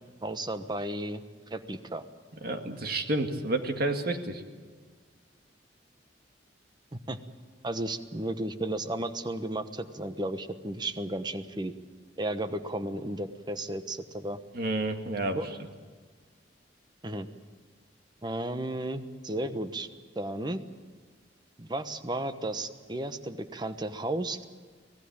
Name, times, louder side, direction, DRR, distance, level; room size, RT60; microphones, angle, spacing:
voice 1, 0.2-2.0 6.9-7.2 7.6-11.7 12.2-14.4 15.3-15.5 17.0-17.3 18.2-19.9 20.1-20.6 21.6-24.4, right 1 dB, 25° right, 10 dB, 1.1 m, -34 dB
voice 2, 2.4-4.4 14.5-15.4, right 2 dB, 55° right, 5 dB, 2.0 m, -30 dB
25.0 x 18.0 x 8.8 m, 1.5 s
head